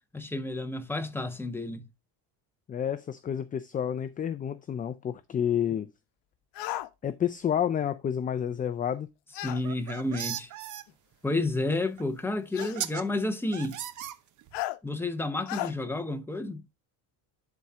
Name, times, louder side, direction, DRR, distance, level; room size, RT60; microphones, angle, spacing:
voice 1, 0.1-1.8 9.4-10.5 11.2-13.8 14.8-16.6, left 2 dB, 5° left, 0.9 m, -31 dB
voice 2, 2.7-5.9 7.0-9.1, left 9 dB, 20° left, 0.4 m, -30 dB
sound 1, 6.5-6.9 9.3-9.6 10.9-11.0 12.5-12.8 14.5-14.8 15.5-15.7, left 15 dB, 70° left, 1.0 m, -34 dB
sound 2, 9.5-10.8 12.0-12.1 12.6-13.0 13.5-14.6, right 11 dB, 45° right, 0.9 m, -37 dB
11.0 x 4.3 x 3.5 m
cardioid pair, 155°, 43 cm